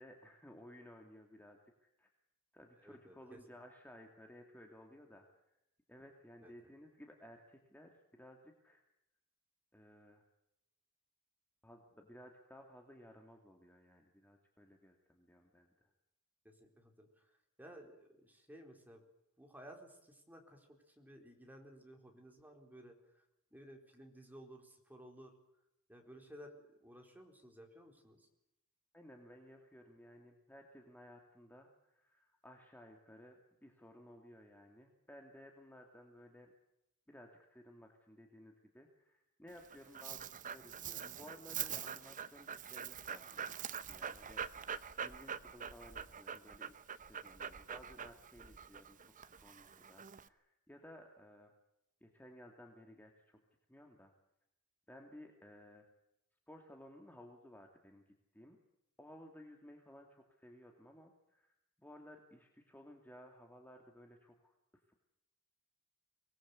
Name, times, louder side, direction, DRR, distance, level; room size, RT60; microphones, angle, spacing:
voice 1, 0.0-2.1 2.5-5.6 5.9-8.8 9.7-10.2 11.6-15.9 28.9-36.5 37.1-44.4 45.0-46.8 47.1-51.5 52.0-53.4 53.7-54.1 54.9-55.9 56.5-58.0 58.3-58.6 59.0-64.9, equal, 10° left, 2 dB, 2.5 m, -57 dB
voice 2, 2.8-3.4 6.4-6.5 16.4-17.3 17.6-19.0 19.4-23.2 23.5-25.3 25.9-26.5 26.8-28.3, equal, 10° right, 2 dB, 4.2 m, -56 dB
Dog, 39.5-50.3, right 8 dB, 35° right, 0.9 m, -45 dB
24.5 x 19.5 x 8.3 m, 0.87 s
head